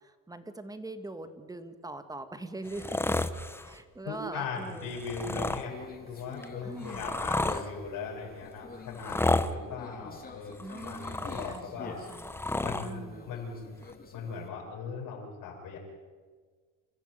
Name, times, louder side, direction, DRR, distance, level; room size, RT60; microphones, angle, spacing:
voice 1, 0.3-3.2 3.6-4.9 6.6-7.1 10.6-12.3 12.8-13.4, right 2 dB, 10° right, 9 dB, 1.9 m, -42 dB
sound 1, 2.6-3.7 4.9-5.6 6.4-7.6 8.9-9.5 10.5-11.6 12.0-12.9 13.9-14.0, left 2 dB, 5° left, 1.0 m, -31 dB
voice 2, 4.0-12.0 12.6-13.7 14.1-15.8, left 5 dB, 70° left, -5 dB, 6.1 m, -39 dB
Conversation, 5.6-14.5, left 4 dB, 25° left, 3.4 m, -47 dB
27.5 x 14.0 x 9.3 m, 1.5 s
cardioid pair, 125°, 33 cm